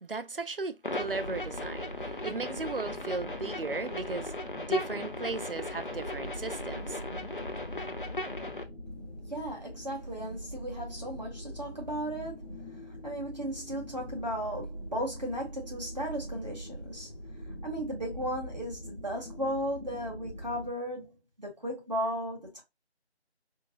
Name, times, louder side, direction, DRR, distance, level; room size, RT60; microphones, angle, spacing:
voice 1, 0.0-7.0, right 4 dB, 55° right, 0.5 m, -36 dB
sound 1, 0.8-8.6, left 1 dB, 50° left, 0.6 m, -37 dB
sound 2, 0.9-20.7, equal, 75° right, 2.4 m, -43 dB
voice 2, 9.3-12.5 13.0-17.1 17.6-21.1 21.4-22.6, equal, 40° right, 1.7 m, -35 dB
4.5 x 2.2 x 3.0 m
figure-of-eight pair, 175°, 33 cm